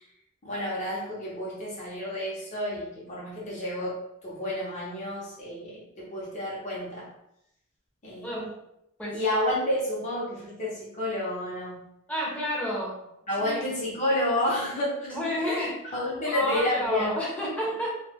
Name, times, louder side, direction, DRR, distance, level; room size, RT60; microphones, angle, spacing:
voice 1, 0.4-7.1 8.0-8.4 9.1-11.9 13.3-15.6 15.9-17.1, left 1 dB, 35° left, -7 dB, 0.8 m, -30 dB
voice 2, 8.2-8.5 9.0-9.2 12.1-13.0 13.4-13.7 15.1-15.8 16.2-18.0, equal, 5° left, -5 dB, 0.7 m, -30 dB
2.3 x 2.2 x 3.4 m, 0.80 s
head